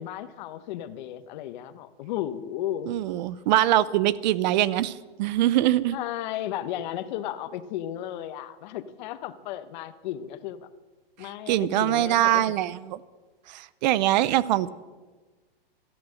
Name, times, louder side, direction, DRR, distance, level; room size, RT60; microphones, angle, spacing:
voice 1, 0.0-2.9 5.9-10.7 11.2-12.4, left 12 dB, 50° left, 13 dB, 1.1 m, -34 dB
voice 2, 2.9-6.0 11.5-13.0 13.5-14.7, right 14 dB, 45° right, 19 dB, 0.7 m, -23 dB
16.0 x 13.0 x 6.5 m, 1.3 s
hypercardioid pair, 140°, 30 cm